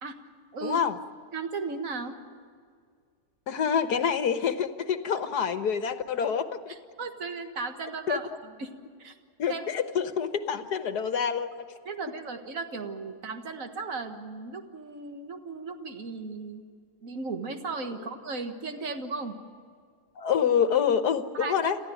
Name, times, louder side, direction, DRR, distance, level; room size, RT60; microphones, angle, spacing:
voice 1, 0.6-0.9 3.5-6.7 8.1-8.2 9.4-11.7 20.2-21.8, left 7 dB, 80° left, 9 dB, 1.7 m, -27 dB
voice 2, 1.3-2.2 6.7-8.7 9.0-9.1 9.5-9.7 11.9-16.6 17.0-19.4 21.3-21.7, right 4 dB, 55° right, 5 dB, 2.0 m, -36 dB
28.0 x 15.0 x 9.2 m, 2.1 s
omnidirectional pair, 1.7 m